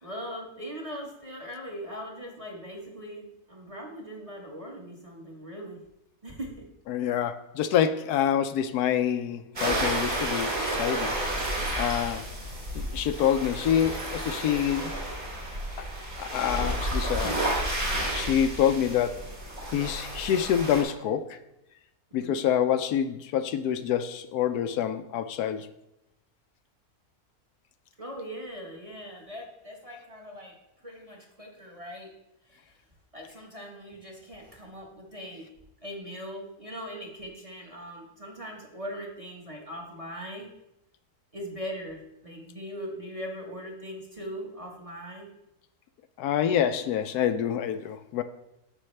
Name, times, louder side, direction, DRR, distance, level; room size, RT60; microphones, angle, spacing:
voice 1, 0.0-5.8 6.2-6.7 22.1-22.5 28.0-30.6 30.8-32.1 32.5-32.8 33.1-35.5 35.8-40.5 41.3-45.3, equal, 25° right, -1 dB, 1.3 m, -40 dB
voice 2, 6.9-11.2 11.8-12.3 12.7-15.0 15.8-15.9 16.2-17.4 18.1-19.2 19.7-21.4 22.1-25.7 46.2-48.2, left 9 dB, 80° left, 10 dB, 1.1 m, -27 dB
sound 1, 9.6-20.8, right 1 dB, 40° right, 2.6 m, -31 dB
9.8 x 6.7 x 3.2 m, 0.87 s
omnidirectional pair, 1.6 m